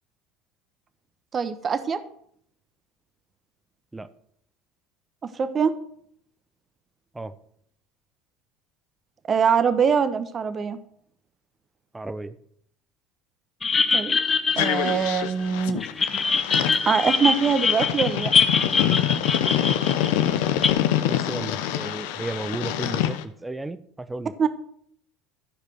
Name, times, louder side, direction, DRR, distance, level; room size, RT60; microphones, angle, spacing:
voice 1, 1.3-2.0 5.4-5.7 9.3-10.8 13.9-14.2 14.6-15.8 16.9-18.3 24.4-24.5, right 6 dB, 35° right, 10 dB, 1.1 m, -23 dB
voice 2, 11.9-12.4 21.1-24.3, right 2 dB, 15° right, 13 dB, 0.9 m, -34 dB
sound 1, 13.6-15.5 15.8-20.7, left 5 dB, 30° left, 1.0 m, -23 dB
sound 2, 14.6-23.2, left 11 dB, 75° left, 0.8 m, -26 dB
13.5 x 5.0 x 6.3 m, 0.66 s
hypercardioid pair, 75°, 0 cm